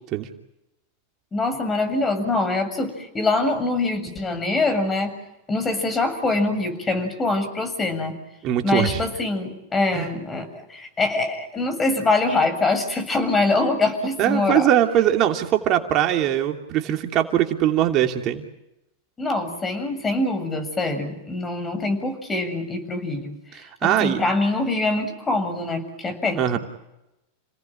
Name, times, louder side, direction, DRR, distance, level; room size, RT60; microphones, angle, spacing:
voice 1, 1.3-5.1 5.5-8.1 8.6-14.7 19.2-26.6, left 2 dB, 20° left, 8 dB, 7.3 m, -24 dB
voice 2, 8.4-9.0 9.9-10.1 14.2-18.4 23.6-24.2 26.4-26.6, right 11 dB, 45° right, 4 dB, 2.8 m, -21 dB
30.0 x 19.0 x 8.9 m, 0.90 s
hypercardioid pair, 105°, 0 cm